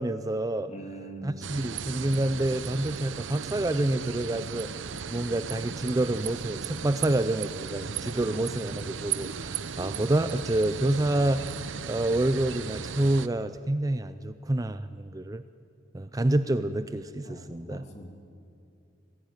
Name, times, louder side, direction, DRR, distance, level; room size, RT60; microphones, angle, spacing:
voice 1, 0.0-0.7 1.2-11.6 11.9-15.4 15.9-17.9, right 1 dB, 20° right, 11 dB, 0.5 m, -28 dB
voice 2, 0.7-1.3 17.2-18.1, right 2 dB, 35° left, 4 dB, 2.5 m, -43 dB
sound 1, 1.4-13.3, right 6 dB, 80° right, 0.7 m, -36 dB
25.0 x 16.5 x 9.2 m, 2.5 s
head